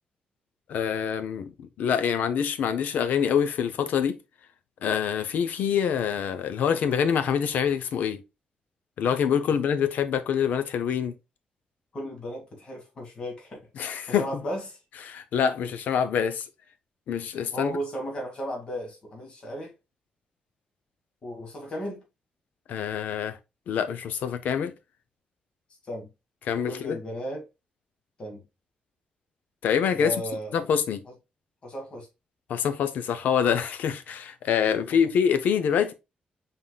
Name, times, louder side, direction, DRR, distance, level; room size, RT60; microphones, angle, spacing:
voice 1, 0.7-1.5 1.8-4.2 4.8-8.2 9.0-11.1 13.8-14.3 15.0-16.4 17.1-17.8 22.7-23.4 23.7-24.7 26.5-27.0 29.6-30.2 30.5-31.0 32.5-35.9, left 7 dB, 80° left, 0.6 m, -25 dB
voice 2, 11.9-13.6 14.1-14.8 17.5-19.7 21.2-22.0 25.9-26.1 26.7-27.5 28.2-28.4 30.0-30.5 31.6-32.1, equal, 35° left, 1.6 m, -35 dB
5.6 x 3.6 x 2.3 m
wide cardioid pair, 165°, 3 cm